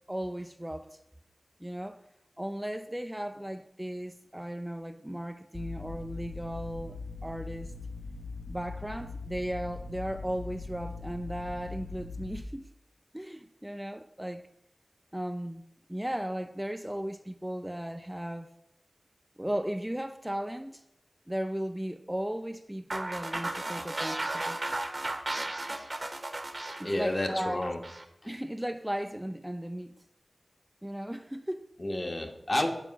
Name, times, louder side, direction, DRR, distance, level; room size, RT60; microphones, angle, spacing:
voice 1, 0.1-1.0 1.6-2.0 2.4-7.7 8.5-12.7 13.1-14.5 15.1-18.5 19.4-20.8 21.3-24.6 26.8-27.7 28.2-30.0 30.8-31.6, equal, 10° right, 0.4 m, -36 dB
sound 1, 5.5-12.4, left 3 dB, 70° left, 2.9 m, -41 dB
sound 2, 22.9-28.0, right 2 dB, 45° right, 0.9 m, -35 dB
voice 2, 26.8-27.8 31.8-32.7, left 1 dB, 40° left, 1.3 m, -30 dB
8.2 x 4.4 x 5.8 m
wide cardioid pair, 55°, 0 cm